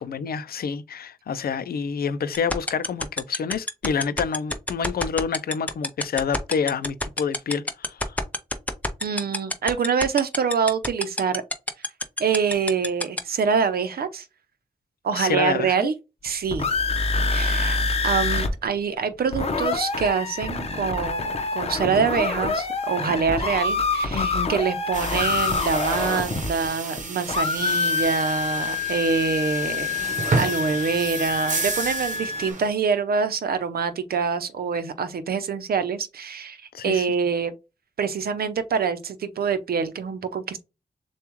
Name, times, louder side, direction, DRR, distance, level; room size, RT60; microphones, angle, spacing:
voice 1, 0.0-8.2 15.1-15.9 24.1-24.5 36.7-37.1, left 6 dB, 80° left, 0.5 m, -28 dB
sound 1, 2.3-13.2, left 1 dB, 10° left, 0.5 m, -25 dB
voice 2, 9.0-11.4 12.2-14.3 15.0-15.9 16.2-16.7 17.3-17.8 18.0-37.5 38.0-40.6, right 6 dB, 90° right, 0.7 m, -25 dB
sound 2, 16.3-18.5 18.8-18.9 19.1-27.0 27.3-32.5, left 4 dB, 40° left, 0.8 m, -26 dB
sound 3, 24.9-32.7, right 4 dB, 55° right, 0.9 m, -31 dB
7.0 x 2.3 x 3.0 m
wide cardioid pair, 160°, 15 cm